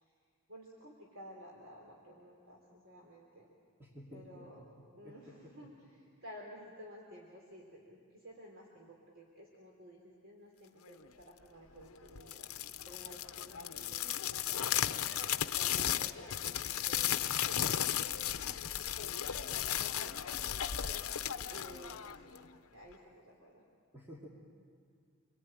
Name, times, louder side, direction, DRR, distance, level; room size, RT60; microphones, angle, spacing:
voice 1, 0.5-3.5 4.1-4.6 4.9-12.5 12.9-18.3 19.0-21.2 21.5-22.4 22.7-23.7, right 1 dB, 60° right, -2 dB, 3.4 m, -54 dB
voice 2, 3.8-5.7 18.8-19.1 23.9-24.3, equal, 10° right, -3 dB, 2.5 m, -53 dB
sound 1, 12.2-22.5, left 10 dB, 80° left, 0.8 m, -35 dB
28.5 x 22.0 x 9.0 m, 2.2 s
head